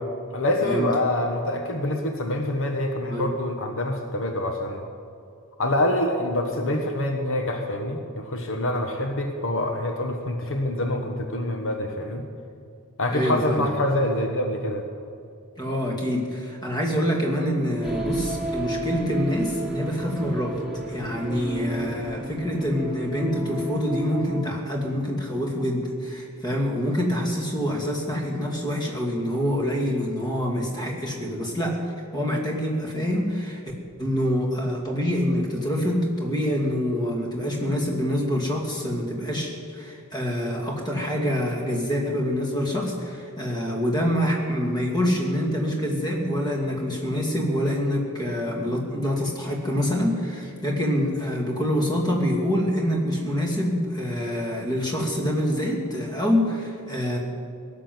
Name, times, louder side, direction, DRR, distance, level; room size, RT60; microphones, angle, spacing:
voice 1, 0.3-4.8 5.6-12.2 13.0-14.9, left 1 dB, 60° left, 3 dB, 1.2 m, -26 dB
voice 2, 13.1-13.7 15.6-20.6 20.9-31.8 32.1-33.6 34.0-57.2, equal, 20° left, -1 dB, 2.5 m, -26 dB
sound 1, 17.8-24.4, right 1 dB, ahead, 2.5 m, -32 dB
18.0 x 7.6 x 9.4 m, 2.5 s
head